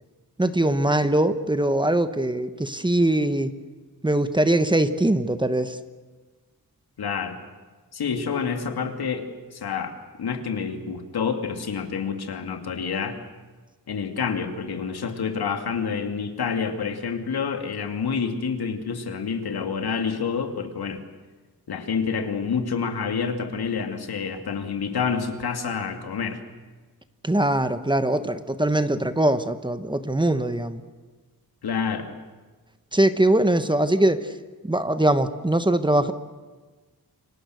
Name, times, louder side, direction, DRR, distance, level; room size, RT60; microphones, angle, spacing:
voice 1, 0.4-3.5 4.0-5.8 27.2-30.8 32.9-34.3 34.6-36.1, right 1 dB, 10° right, 10 dB, 1.2 m, -22 dB
voice 2, 7.0-7.4 7.9-13.2 13.9-21.0 21.7-26.4 31.6-32.1, left 6 dB, 85° left, 5 dB, 2.6 m, -28 dB
28.5 x 24.5 x 6.5 m, 1.4 s
wide cardioid pair, 95°, 37 cm